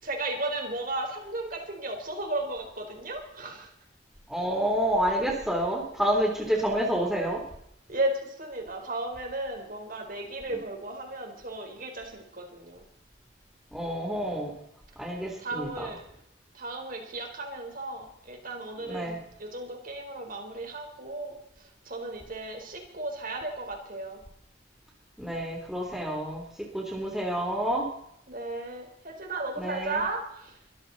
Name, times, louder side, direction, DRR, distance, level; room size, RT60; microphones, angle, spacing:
voice 1, 0.0-3.7 7.9-12.8 15.4-16.0 16.5-24.2 28.3-30.6, right 2 dB, 45° right, 3 dB, 4.0 m, -35 dB
voice 2, 4.3-7.4 13.7-14.5 15.0-15.9 18.9-19.2 25.2-26.4 26.7-27.9 29.6-30.0, equal, ahead, -1 dB, 3.2 m, -28 dB
23.5 x 14.0 x 4.1 m, 0.75 s
head